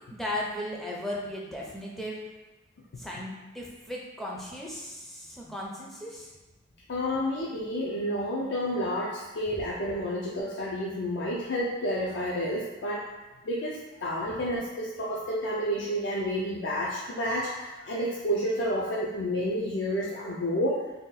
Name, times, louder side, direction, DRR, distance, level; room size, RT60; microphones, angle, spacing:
voice 1, 0.1-2.2 3.0-6.3 7.5-7.6 14.3-14.4, left 1 dB, ahead, -4 dB, 0.4 m, -36 dB
voice 2, 6.9-13.0 13.5-20.8, equal, 70° left, -5 dB, 0.4 m, -30 dB
2.7 x 2.3 x 3.8 m, 1.1 s
head